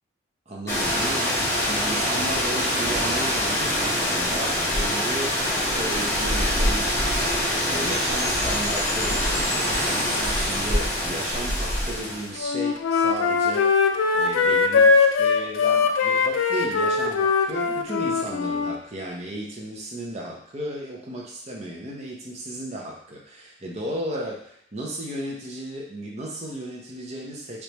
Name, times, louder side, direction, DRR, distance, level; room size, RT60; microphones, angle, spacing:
voice 1, 0.5-27.6, right 1 dB, 35° right, -2 dB, 0.6 m, -35 dB
sound 1, 0.7-12.4, equal, 15° left, 1.1 m, -24 dB
Percussion / Wind chime, 7.6-12.3, left 1 dB, 30° left, 1.2 m, -38 dB
Wind instrument woodwind instrument, 12.4-18.8, left 5 dB, 85° left, 0.4 m, -21 dB
3.3 x 3.2 x 3.0 m, 0.68 s
head